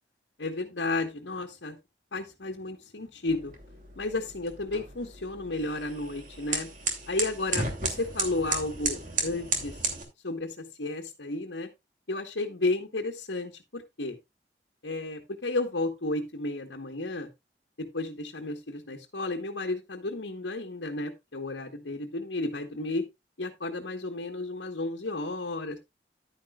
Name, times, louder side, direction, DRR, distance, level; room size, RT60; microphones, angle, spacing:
voice 1, 0.4-1.8 2.1-3.5 4.0-6.7 7.1-9.8 10.2-11.7 12.1-14.2 14.8-17.3 17.8-23.0 23.4-25.8, left 2 dB, 90° left, 1 dB, 1.4 m, -32 dB
sound 1, 3.3-10.0, right 4 dB, 45° right, 2.7 m, -34 dB
11.0 x 10.0 x 2.4 m, 0.22 s
head